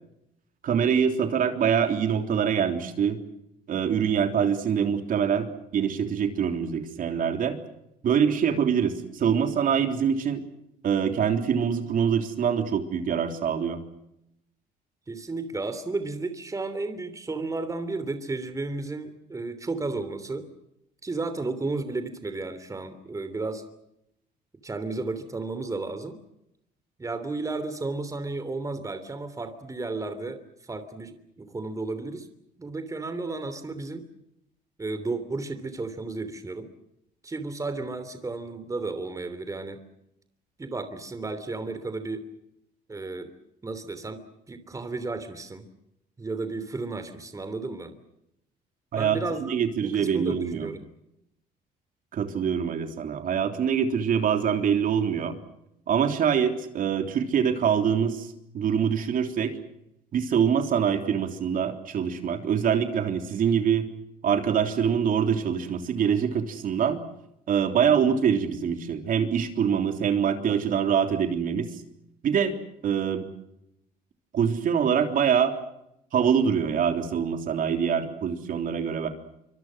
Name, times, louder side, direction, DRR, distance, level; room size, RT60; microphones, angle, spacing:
voice 1, 0.6-3.2 3.7-5.5 5.7-7.6 8.0-10.4 10.8-13.8 48.9-50.7 52.1-55.3 55.9-58.3 58.5-59.6 60.1-63.9 64.2-67.0 67.5-71.7 72.2-72.6 72.8-73.3 74.3-75.5 76.1-79.1, right 7 dB, 55° right, 6 dB, 3.5 m, -24 dB
voice 2, 15.1-20.5 21.0-23.6 24.6-26.2 27.0-32.3 32.6-34.0 34.8-36.7 37.2-39.8 40.6-42.2 42.9-43.3 43.6-45.6 46.2-47.9 49.0-50.8, right 3 dB, 20° right, 11 dB, 3.1 m, -33 dB
26.5 x 25.0 x 6.3 m, 0.81 s
cardioid pair, 110°, 17 cm